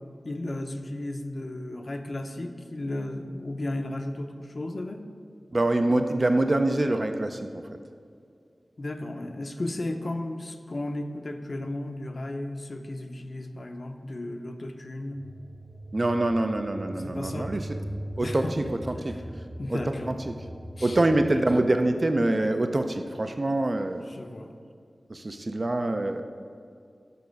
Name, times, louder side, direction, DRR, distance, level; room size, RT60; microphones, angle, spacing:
voice 1, 0.2-5.0 8.8-15.2 17.0-17.5 18.2-19.2 19.6-20.1 20.8-21.0 24.0-24.5, left 1 dB, 55° left, 6 dB, 0.6 m, -34 dB
voice 2, 5.5-7.6 15.9-17.7 18.2-19.1 19.7-19.8 20.1-20.5 20.8-24.1 25.1-26.2, right 2 dB, 45° right, 7 dB, 0.4 m, -25 dB
sound 1, 15.1-21.6, right 1 dB, 90° right, 2.0 m, -40 dB
6.9 x 6.0 x 5.2 m, 2.3 s
wide cardioid pair, 60°, 0 cm